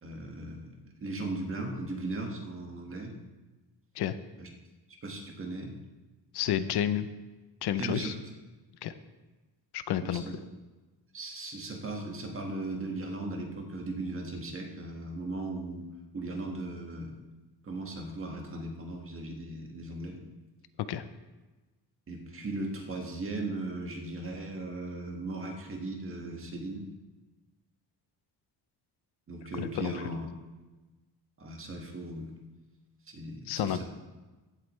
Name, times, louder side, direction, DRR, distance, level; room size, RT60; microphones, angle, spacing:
voice 1, 0.0-3.1 4.4-4.5 4.9-5.8 7.7-8.2 10.0-10.4 11.1-17.2 17.6-20.2 22.1-26.9 29.3-30.3 31.4-32.3 33.1-33.8, right 2 dB, 35° right, 1 dB, 1.7 m, -37 dB
voice 2, 6.3-7.1 7.6-8.1 8.8-8.9 9.7-10.2 20.9-21.0 29.6-29.9 33.5-33.8, left 10 dB, 80° left, 12 dB, 0.7 m, -30 dB
15.5 x 7.8 x 3.2 m, 1.2 s
cardioid pair, 140°, 39 cm